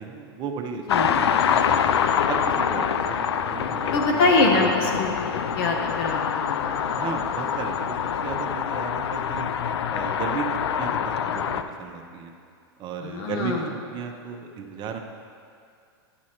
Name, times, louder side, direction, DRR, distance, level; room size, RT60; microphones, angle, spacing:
voice 1, 0.0-1.9 2.3-4.2 4.5-5.3 6.9-8.0 8.2-9.5 9.9-12.3 12.8-13.6 13.9-15.0, right 6 dB, 35° right, 3 dB, 0.8 m, -35 dB
sound 1, 0.9-11.6, left 8 dB, 85° left, 0.4 m, -25 dB
voice 2, 3.9-5.1 5.6-6.8 13.0-13.7, left 3 dB, 60° left, 1 dB, 0.9 m, -23 dB
10.5 x 6.1 x 2.9 m, 2.3 s
hypercardioid pair, 120°, 13 cm